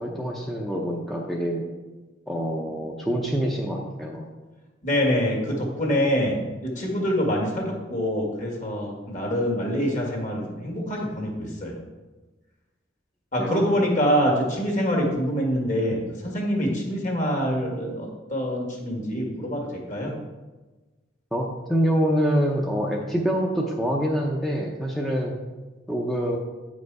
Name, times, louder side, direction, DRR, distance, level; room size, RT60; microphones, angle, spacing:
voice 1, 0.0-1.6 2.3-4.2 13.4-13.7 21.3-25.3 25.9-26.4, equal, ahead, -3 dB, 0.7 m, -25 dB
voice 2, 4.8-6.4 6.6-11.8 13.3-20.1, equal, 40° left, -1 dB, 1.9 m, -25 dB
8.9 x 5.2 x 4.7 m, 1.2 s
head